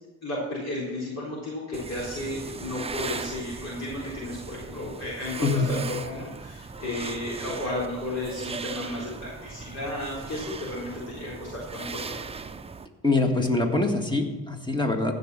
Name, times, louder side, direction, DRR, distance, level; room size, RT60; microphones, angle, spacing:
voice 1, 0.2-12.3, left 1 dB, 55° left, -6 dB, 4.0 m, -33 dB
sound 1, 1.7-12.9, right 4 dB, 20° right, 0.6 m, -38 dB
voice 2, 13.0-15.1, left 3 dB, 15° left, 4 dB, 1.8 m, -24 dB
15.0 x 5.5 x 7.5 m, 1.2 s
cardioid pair, 90°, 30 cm